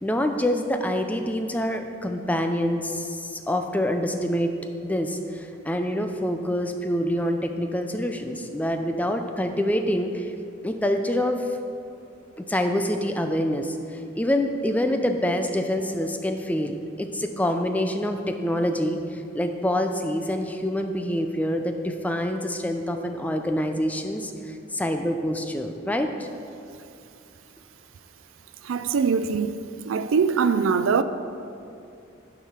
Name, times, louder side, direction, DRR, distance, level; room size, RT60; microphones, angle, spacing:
voice 1, 0.0-4.5 4.8-10.3 10.6-11.5 12.4-13.8 14.1-26.1, equal, 10° left, 0.4 m, -26 dB
voice 2, 28.6-29.6 29.9-31.0, right 5 dB, 90° right, 0.4 m, -22 dB
10.0 x 4.9 x 5.7 m
head